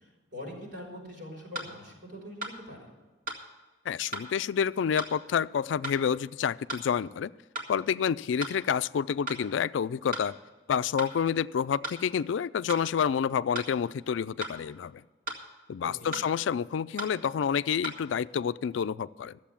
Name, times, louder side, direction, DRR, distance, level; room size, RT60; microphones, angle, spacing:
voice 1, 0.0-2.8 15.8-16.1, left 1 dB, 75° right, -2 dB, 5.1 m, -43 dB
sound 1, 0.8-0.9 1.5-1.7 2.4-2.6 3.3-3.4 4.1-4.3 5.0-5.1 5.8-6.0 6.7-6.9 7.5-7.7 8.4-8.6 9.3-9.4 10.1-10.3 11.0-11.1 11.8-12.0 12.7-12.9 13.5-13.7 14.4-14.6 15.3-15.4 16.1-16.3 17.0-17.1 17.8-18.0, right 1 dB, 50° right, 2.1 m, -36 dB
voice 2, 3.9-7.3 7.7-10.3 10.7-15.0 15.7-19.4, left 7 dB, 80° left, 16 dB, 0.3 m, -28 dB
13.5 x 7.7 x 7.2 m, 1.3 s
head